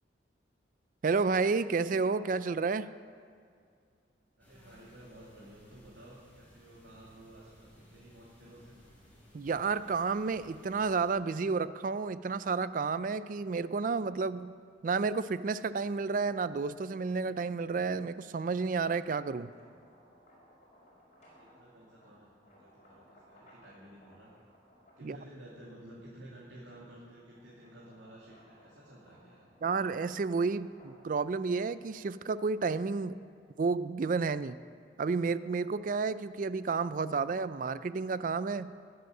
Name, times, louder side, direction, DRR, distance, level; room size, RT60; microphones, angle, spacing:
voice 1, 1.0-2.9 9.3-14.5 14.8-19.5 25.0-25.2 29.6-33.2 33.6-34.6 35.0-38.7, right 4 dB, 45° right, 15 dB, 0.4 m, -31 dB
sound 1, 4.4-11.1, equal, 10° left, 4.8 m, -59 dB
voice 2, 4.4-8.7 21.3-24.3 25.0-29.5, right 1 dB, 85° right, -7 dB, 2.8 m, -53 dB
sound 2, 19.4-25.9 26.4-33.6, equal, 40° left, 4.7 m, -62 dB
20.0 x 7.9 x 6.6 m, 2.2 s
head